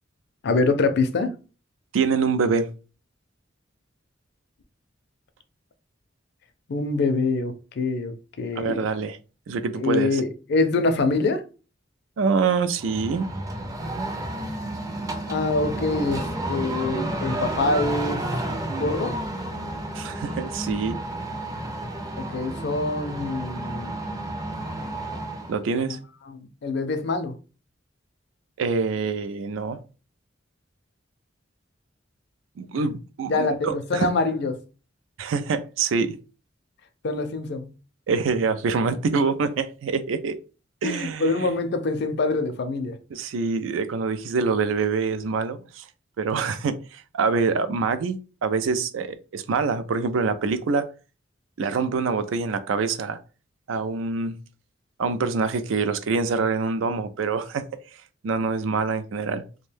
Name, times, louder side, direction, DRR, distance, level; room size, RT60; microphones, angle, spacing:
voice 1, 0.4-1.3 6.7-8.8 9.7-11.4 15.3-18.2 18.8-19.2 22.2-23.9 25.8-26.0 26.3-27.3 33.3-34.6 37.0-37.7 40.8-43.0, left 3 dB, 60° left, 0.4 m, -25 dB
voice 2, 1.9-2.7 8.5-9.2 9.5-10.2 12.2-13.3 19.9-21.0 25.5-26.0 28.6-29.8 32.6-34.1 35.2-36.2 38.1-40.4 40.8-41.5 43.1-45.8 46.2-50.9 51.6-53.2 53.7-54.3 55.0-57.6 58.2-59.4, right 4 dB, 90° right, 0.4 m, -25 dB
sound 1, 12.8-25.6, right 1 dB, 20° right, 0.4 m, -31 dB
2.6 x 2.2 x 3.3 m
head